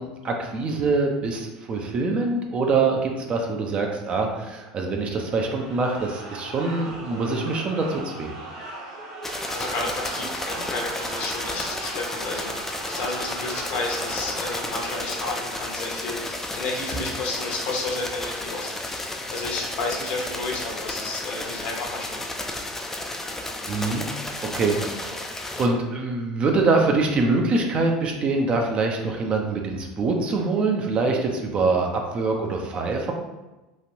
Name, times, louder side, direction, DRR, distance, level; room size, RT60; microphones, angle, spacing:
voice 1, 0.0-8.3 23.7-24.1 24.4-25.2 25.6-33.1, right 3 dB, 35° right, 2 dB, 0.5 m, -24 dB
sound 1, 5.2-16.1, right 2 dB, 55° right, 1.4 m, -38 dB
sound 2, 9.2-25.7, left 1 dB, 10° left, 0.4 m, -33 dB
voice 2, 9.5-22.2, left 3 dB, 55° left, -1 dB, 0.8 m, -32 dB
3.2 x 2.4 x 2.7 m, 1.1 s
hypercardioid pair, 85°, 3 cm